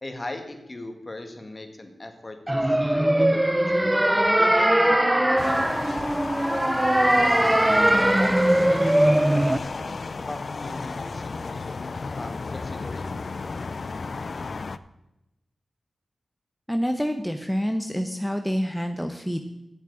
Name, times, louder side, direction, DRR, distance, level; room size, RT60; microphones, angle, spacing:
voice 1, 0.0-3.4 3.6-3.9 4.4-6.1 6.4-6.6 7.2-11.7 12.1-13.1, left 2 dB, 35° left, 6 dB, 1.8 m, -38 dB
sound 1, 2.5-9.6, right 1 dB, 15° right, 0.5 m, -20 dB
sound 2, 5.4-14.8, left 4 dB, 65° left, 0.4 m, -34 dB
sound 3, 5.9-7.6, right 1 dB, 85° right, 2.0 m, -50 dB
voice 2, 16.7-19.4, equal, 5° left, 6 dB, 0.9 m, -27 dB
7.7 x 7.4 x 8.4 m, 0.92 s
cardioid pair, 45°, 0 cm